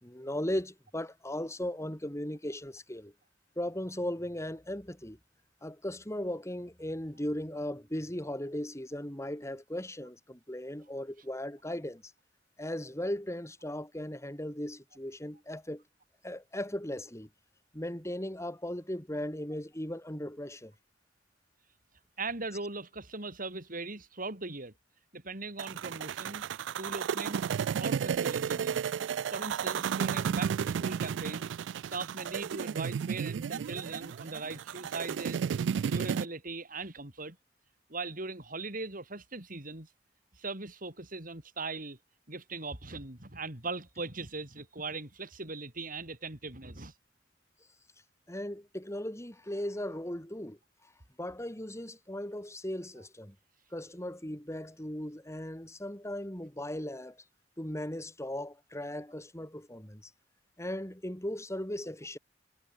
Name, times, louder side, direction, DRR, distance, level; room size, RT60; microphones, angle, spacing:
voice 1, 0.0-3.1 3.6-5.2 5.6-12.0 12.6-15.8 16.2-17.3 17.7-20.7 48.3-50.6 51.2-53.3 53.7-57.2 57.6-60.0 60.6-62.2, left 1 dB, 15° left, 4.1 m, -37 dB
voice 2, 22.2-24.7 25.1-26.5 26.8-27.5 27.8-28.8 29.3-31.6 31.8-35.4 35.8-37.4 37.9-39.9 40.3-42.0 42.3-46.9, right 3 dB, 50° right, 4.5 m, -40 dB
sound 1, 25.6-36.3, right 7 dB, 80° right, 0.3 m, -33 dB
head